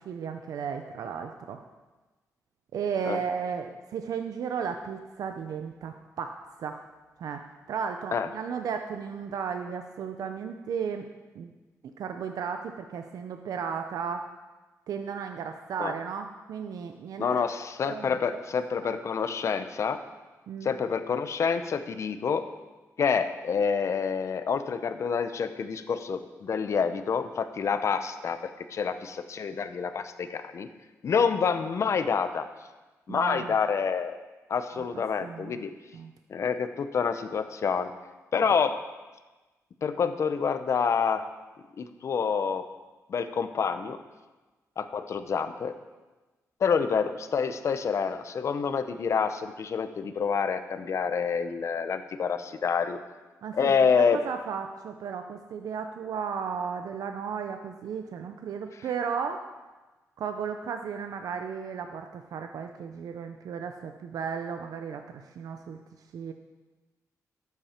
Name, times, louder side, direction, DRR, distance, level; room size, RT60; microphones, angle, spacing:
voice 1, 0.1-1.6 2.7-6.8 7.2-11.1 11.3-11.5 12.0-14.2 14.9-17.4 17.8-18.1 18.8-19.0 20.5-20.7 33.1-33.5 34.9-35.6 35.9-36.1 38.4-38.5 53.4-59.4 60.2-65.8 66.1-66.3, right 6 dB, 80° right, 6 dB, 0.6 m, -34 dB
voice 2, 17.2-20.0 20.6-22.4 23.0-30.7 31.0-32.5 33.1-34.2 34.5-35.7 36.3-37.9 38.3-38.7 39.8-41.2 41.8-42.6 43.1-44.0 44.8-45.7 46.6-53.0 53.5-54.2, left 6 dB, 55° left, 10 dB, 0.7 m, -27 dB
12.0 x 8.3 x 4.4 m, 1.2 s
wide cardioid pair, 130°, 6 cm